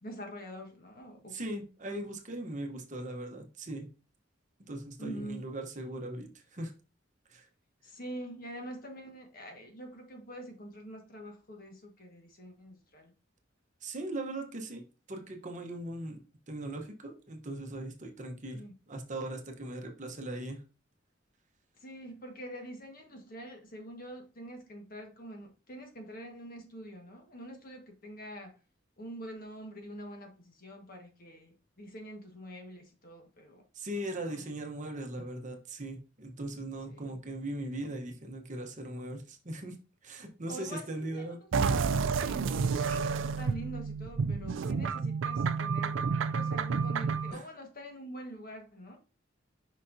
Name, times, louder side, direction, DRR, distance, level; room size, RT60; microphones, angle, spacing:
voice 1, 0.0-1.4 1.8-2.0 5.0-5.4 7.8-13.1 18.5-18.7 21.8-28.6 29.0-33.6 34.3-34.4 36.9-37.1 40.5-41.3 41.6-41.8 42.1-42.5 42.8-46.0 46.3-49.0, equal, 50° left, 1.5 m, -45 dB
voice 2, 1.3-3.9 4.7-6.7 7.3-7.5 13.8-14.8 15.1-16.2 16.5-18.6 18.9-20.6 33.7-39.7 40.0-41.4 47.3-47.4, right 1 dB, 40° right, 1.0 m, -39 dB
sound 1, 41.5-47.3, right 5 dB, 80° right, 0.4 m, -30 dB
6.1 x 5.6 x 2.7 m
head